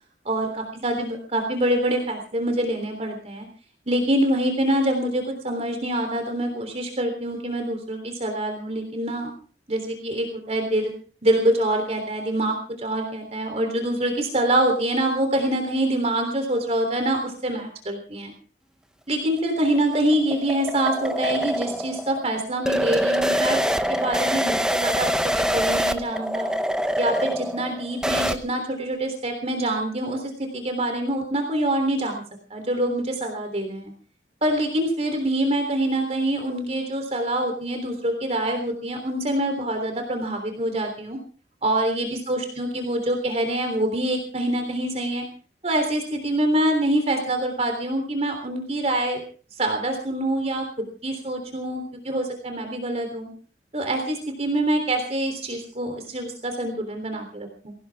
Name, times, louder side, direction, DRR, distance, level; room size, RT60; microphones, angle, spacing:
voice 1, 0.2-3.5 3.9-9.3 9.7-10.9 11.2-18.3 19.1-26.5 27.0-32.2 32.5-33.9 34.4-41.2 41.6-45.2 45.6-49.2 49.5-50.6 51.0-53.3 53.7-57.7, right 1 dB, 35° right, 4 dB, 3.4 m, -25 dB
sound 1, 19.4-28.4, equal, 5° right, 0.9 m, -25 dB
22.5 x 17.5 x 3.6 m, 0.40 s
head